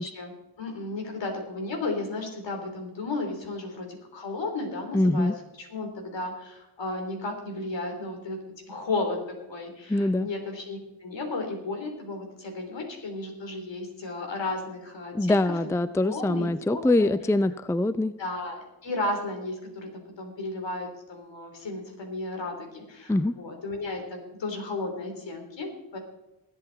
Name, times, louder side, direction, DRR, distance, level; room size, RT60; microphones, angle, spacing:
voice 1, 0.0-5.3 5.6-8.4 8.7-15.7 16.0-17.1 18.2-26.0, left 2 dB, 70° left, 3 dB, 3.5 m, -34 dB
voice 2, 4.9-5.3 9.9-10.3 15.1-18.1 23.1-23.3, left 2 dB, 5° left, 14 dB, 0.5 m, -23 dB
21.0 x 8.3 x 4.0 m, 0.94 s
cardioid pair, 60°, 45 cm